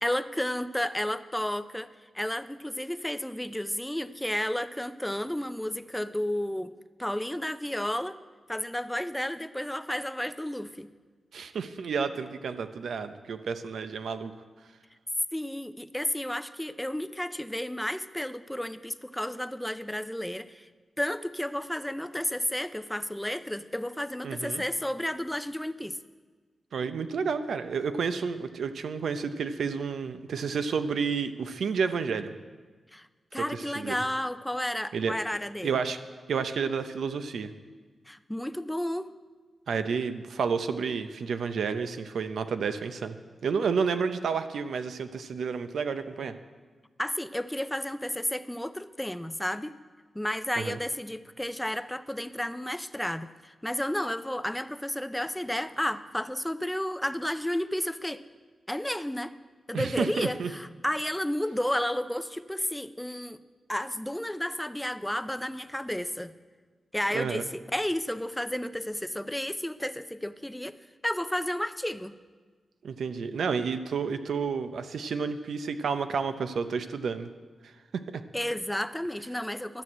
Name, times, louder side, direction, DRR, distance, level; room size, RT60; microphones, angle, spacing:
voice 1, 0.0-1.9 2.1-6.7 7.0-8.2 8.5-10.9 15.3-20.7 21.0-26.0 32.9-33.1 33.3-35.7 38.1-39.1 47.0-49.8 50.1-58.2 58.7-59.3 59.7-63.4 63.7-66.3 66.9-70.8 71.0-72.2 78.3-79.8, left 1 dB, 5° left, 12 dB, 0.5 m, -32 dB
voice 2, 11.3-14.3 24.2-24.6 26.7-32.3 33.3-34.0 34.9-35.2 35.6-36.0 36.3-37.5 39.7-43.2 43.4-46.4 50.6-50.8 59.7-60.5 67.1-67.5 72.8-77.3 77.6-77.7 78.1-78.2, right 5 dB, 85° right, 10 dB, 0.7 m, -30 dB
12.0 x 6.3 x 8.6 m, 1.4 s
cardioid pair, 85°, 0 cm